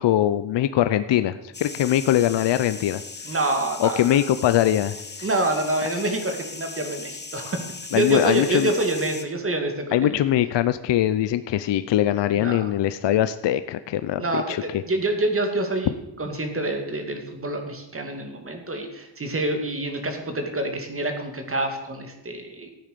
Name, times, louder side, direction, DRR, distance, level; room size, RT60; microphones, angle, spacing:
voice 1, 0.0-3.0 3.8-5.0 7.9-8.7 9.9-14.6, left 12 dB, 70° left, 12 dB, 0.7 m, -22 dB
sound 1, 1.5-9.2, left 4 dB, 25° left, 1.2 m, -38 dB
voice 2, 3.2-4.2 5.2-7.6 7.9-10.2 12.3-12.7 14.2-15.9 16.2-22.7, right 1 dB, 30° right, 5 dB, 2.4 m, -26 dB
14.0 x 9.0 x 6.8 m, 0.93 s
cardioid pair, 130°, 45 cm